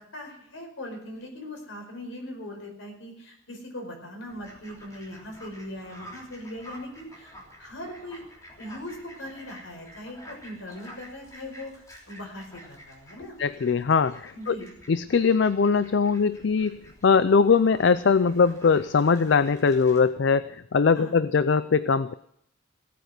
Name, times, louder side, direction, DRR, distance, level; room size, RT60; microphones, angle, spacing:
voice 1, 0.0-8.2 8.6-13.3 14.3-14.7 20.9-21.2, left 1 dB, 80° left, 2 dB, 4.9 m, -40 dB
Fowl, 4.3-20.0, equal, 15° left, 3.3 m, -49 dB
voice 2, 13.4-14.6 14.9-22.1, left 5 dB, 60° left, 14 dB, 0.4 m, -21 dB
17.0 x 9.1 x 6.7 m, 0.73 s
head